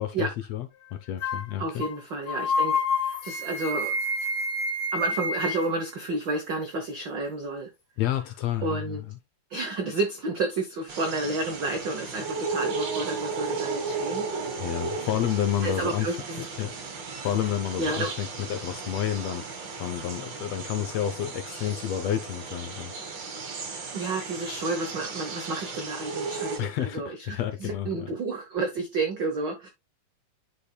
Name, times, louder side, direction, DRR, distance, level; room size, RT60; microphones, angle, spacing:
voice 1, 0.0-1.8 8.0-9.0 14.6-16.1 16.6-16.7 17.2-19.4 19.8-22.9 26.6-28.1, left 11 dB, 75° left, 1.6 m, -30 dB
sound 1, 1.2-1.5 1.8-2.0 2.3-5.7, left 2 dB, 50° left, 1.6 m, -28 dB
voice 2, 1.6-3.9 4.9-7.7 8.6-9.0 9.5-14.4 14.7-14.8 15.6-16.4 17.8-18.1 23.9-29.7, right 2 dB, 75° right, 1.0 m, -31 dB
sound 2, 10.9-26.6, right 4 dB, 50° right, 1.6 m, -35 dB
10.0 x 5.0 x 2.2 m
omnidirectional pair, 3.5 m